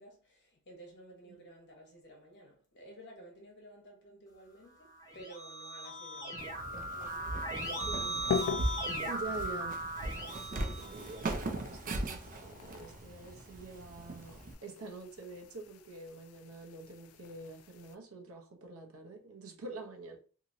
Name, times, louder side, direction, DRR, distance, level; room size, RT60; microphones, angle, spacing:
voice 1, 0.0-8.0 8.8-9.2, right 1 dB, 55° left, 1.1 m, -54 dB
Keyboard (musical), 4.9-11.6, right 1 dB, 15° left, 0.7 m, -38 dB
Walk footsteps, 6.4-14.5, right 2 dB, 40° right, 0.4 m, -40 dB
sound 1, 7.7-18.0, left 6 dB, 80° left, 0.3 m, -42 dB
voice 2, 7.7-8.2 9.0-9.8 10.4-20.2, right 3 dB, 80° right, 0.7 m, -46 dB
2.9 x 2.8 x 2.6 m
head